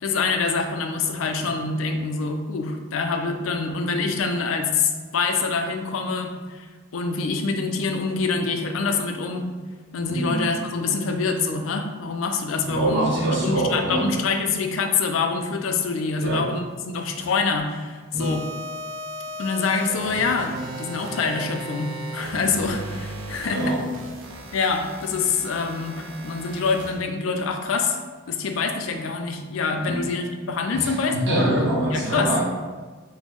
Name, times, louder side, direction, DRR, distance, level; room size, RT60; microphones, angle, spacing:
voice 1, 0.0-6.7 6.9-9.5 9.9-13.1 13.4-18.5 19.4-23.7 24.5-28.0 28.3-32.3, left 4 dB, 80° left, 5 dB, 0.4 m, -25 dB
voice 2, 10.1-10.5 12.7-14.1 16.2-16.4 18.1-18.4 23.5-23.8 29.8-30.0 30.7-32.4, right 1 dB, 60° right, -5 dB, 1.1 m, -24 dB
sound 1, 18.2-27.0, right 1 dB, 80° right, 0.4 m, -36 dB
4.3 x 2.1 x 3.0 m, 1.4 s
head